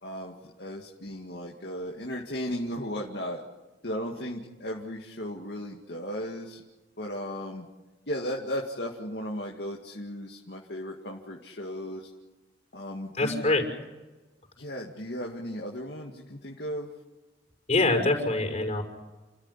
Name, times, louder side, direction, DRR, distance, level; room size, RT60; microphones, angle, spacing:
voice 1, 0.0-3.4 3.8-6.6 7.0-7.7 8.1-12.1 12.7-13.5 14.6-16.9, equal, 65° left, 0 dB, 2.1 m, -35 dB
voice 2, 13.2-13.6 17.7-18.8, left 2 dB, 40° left, 2 dB, 6.0 m, -24 dB
30.0 x 14.0 x 9.9 m, 1.2 s
head